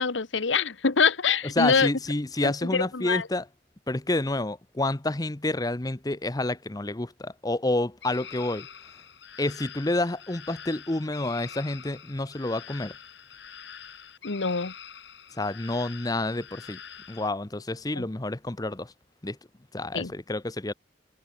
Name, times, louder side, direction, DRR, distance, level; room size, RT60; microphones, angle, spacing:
voice 1, 0.0-1.9 2.4-3.3 14.2-14.7 18.0-18.1 19.9-20.1, left 5 dB, 85° left, 1.1 m, -25 dB
voice 2, 1.6-3.4 3.9-8.7 9.4-12.9 15.3-16.8 17.1-18.9 19.2-19.4 19.7-20.7, left 2 dB, 20° left, 0.8 m, -29 dB
sound 1, 8.0-17.3, left 8 dB, 70° left, 4.5 m, -45 dB
head